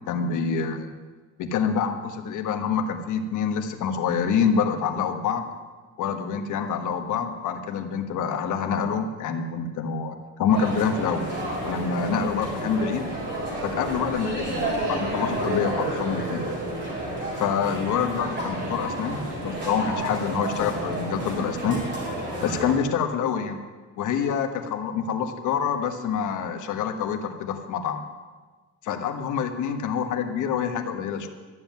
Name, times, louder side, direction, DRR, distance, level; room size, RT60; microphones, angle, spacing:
voice 1, 0.1-0.9 1.4-5.5 6.0-11.2 11.6-13.1 13.6-16.4 17.4-21.8 22.4-23.6 24.0-28.0 28.8-31.3, left 6 dB, 75° left, 6 dB, 1.4 m, -26 dB
sound 1, 10.5-22.7, right 1 dB, 35° right, 5.3 m, -30 dB
13.0 x 7.5 x 9.4 m, 1.4 s
cardioid pair, 135°, 31 cm